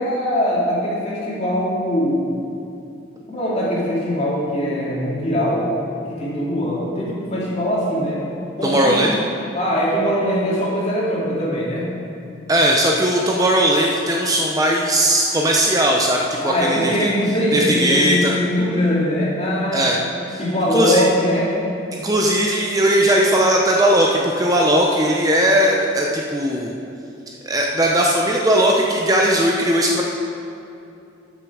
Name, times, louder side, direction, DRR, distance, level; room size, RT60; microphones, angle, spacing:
voice 1, 0.0-2.3 3.3-5.7 6.1-8.2 8.6-9.0 9.5-12.0 16.4-19.9 20.4-21.5, equal, 35° left, -6 dB, 2.4 m, -21 dB
voice 2, 8.6-9.1 12.5-17.1 17.5-18.4 19.7-20.0 20.3-20.4 20.7-21.0 21.9-26.7 27.4-30.0, right 1 dB, 20° right, -1 dB, 0.6 m, -18 dB
13.0 x 6.5 x 4.8 m, 2.7 s
head